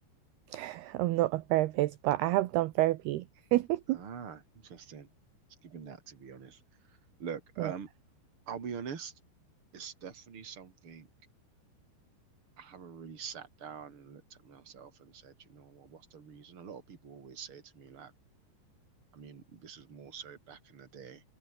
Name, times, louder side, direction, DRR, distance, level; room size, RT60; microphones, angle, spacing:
voice 1, 0.5-3.3 3.5-4.0 7.6-7.7, right 17 dB, 75° right, 2.6 m, -29 dB
voice 2, 3.9-5.1 5.6-6.6 7.2-7.9 8.5-9.1 9.7-11.1 12.6-18.1 19.1-21.2, right 7 dB, 35° right, 3.2 m, -45 dB
omnidirectional pair, 5.2 m